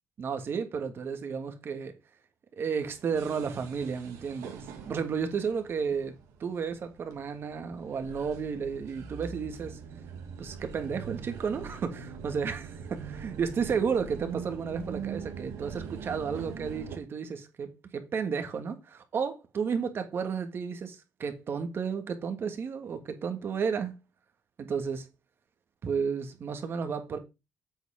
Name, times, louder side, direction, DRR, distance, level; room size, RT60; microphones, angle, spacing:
voice 1, 0.2-1.9 2.5-6.1 6.4-9.8 10.4-24.0 24.6-25.0 25.8-27.2, right 6 dB, 50° right, 1.7 m, -32 dB
sound 1, 2.8-17.0, right 7 dB, 80° right, 1.8 m, -43 dB
8.1 x 4.1 x 5.0 m
cardioid pair, 85°, 5 cm